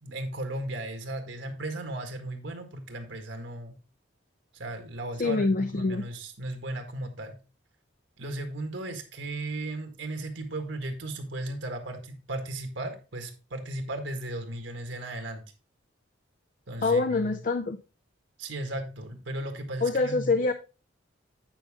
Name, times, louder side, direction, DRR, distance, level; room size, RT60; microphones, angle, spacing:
voice 1, 0.0-3.7 4.5-7.4 8.2-15.4 16.7-17.4 18.4-20.5, right 1 dB, 75° right, 1.7 m, -36 dB
voice 2, 5.2-6.0 16.8-17.8 19.8-20.5, left 3 dB, 45° left, 0.4 m, -25 dB
9.1 x 5.5 x 3.6 m
head